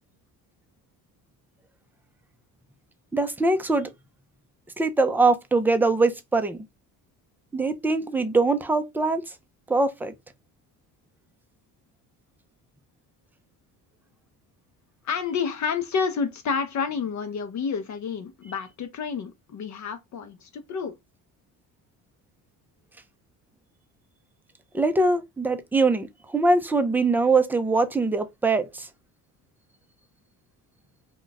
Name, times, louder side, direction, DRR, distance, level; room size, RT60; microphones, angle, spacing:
voice 1, 3.1-3.9 4.8-6.6 7.5-9.3 9.7-10.1 24.7-28.9, right 3 dB, 5° right, 0.4 m, -22 dB
voice 2, 15.0-21.0, left 6 dB, 45° left, 0.6 m, -29 dB
2.5 x 2.2 x 3.8 m
cardioid pair, 95°, 39 cm